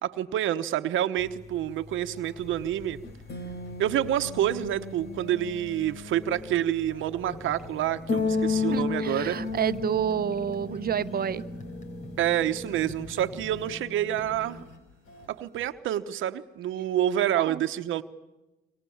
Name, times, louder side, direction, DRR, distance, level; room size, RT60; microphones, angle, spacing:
voice 1, 0.0-3.0 3.8-9.4 12.2-14.6 15.3-18.0, right 11 dB, 80° right, 9 dB, 1.1 m, -28 dB
sound 1, 1.2-13.7, left 4 dB, 55° left, 3.7 m, -35 dB
sound 2, 2.3-15.7, left 2 dB, 85° left, 4.2 m, -53 dB
sound 3, 7.2-14.6, equal, 40° left, 4.0 m, -44 dB
voice 2, 8.7-11.4 17.4-17.6, right 8 dB, 50° right, 15 dB, 1.0 m, -29 dB
27.5 x 25.0 x 7.2 m, 1.0 s
cardioid pair, 90°, 20 cm